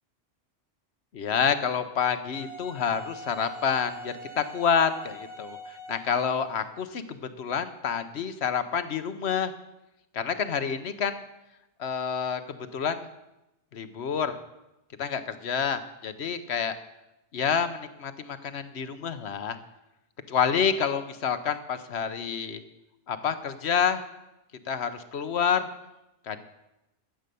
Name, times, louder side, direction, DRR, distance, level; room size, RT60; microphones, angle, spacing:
voice 1, 1.1-9.5 10.1-11.2 11.8-13.1 13.7-14.4 15.0-16.7 17.3-19.6 20.3-22.6 23.1-24.0 24.7-25.7 26.3-26.4, left 7 dB, 65° left, 11 dB, 1.1 m, -28 dB
Wind instrument woodwind instrument, 2.3-6.8, equal, 30° right, 2.1 m, -43 dB
13.0 x 8.0 x 6.8 m, 0.93 s
omnidirectional pair, 1.2 m